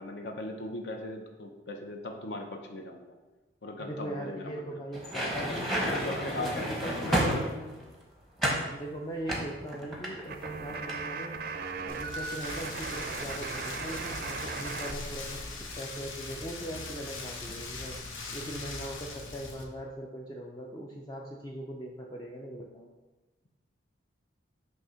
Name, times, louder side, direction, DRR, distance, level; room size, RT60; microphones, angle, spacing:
voice 1, 0.0-3.2 3.6-4.7 5.8-7.5, left 2 dB, 60° left, 3 dB, 0.7 m, -38 dB
voice 2, 3.8-7.8 8.7-11.3 11.8-18.0 18.3-22.9, right 1 dB, 20° left, -1 dB, 0.4 m, -40 dB
sound 1, 4.9-7.9 8.4-8.7 9.3-10.5 10.7-11.0, right 1 dB, ahead, 0.8 m, -31 dB
sound 2, 10.3-14.9 15.2-17.2, right 4 dB, 50° right, 0.4 m, -39 dB
Rain, 11.9-19.6, left 3 dB, 90° left, 0.8 m, -41 dB
6.2 x 2.7 x 5.6 m, 1.1 s
head